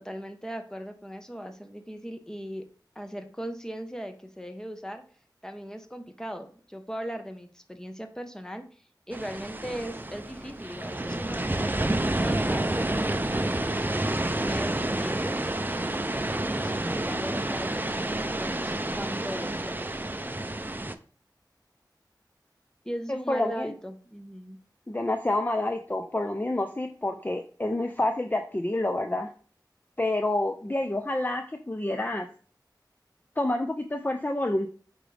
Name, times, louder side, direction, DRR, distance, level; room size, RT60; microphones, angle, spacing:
voice 1, 0.0-2.6 2.9-5.0 5.4-13.6 14.3-15.4 16.1-19.8 22.8-24.6, equal, 10° left, 6 dB, 1.2 m, -38 dB
sound 1, 9.1-20.9, right 1 dB, 25° right, 0.6 m, -29 dB
voice 2, 23.3-23.7 24.9-29.3 30.0-32.3 33.4-34.7, left 1 dB, 25° left, 6 dB, 0.6 m, -28 dB
8.6 x 5.1 x 3.4 m, 0.42 s
wide cardioid pair, 45°, 8 cm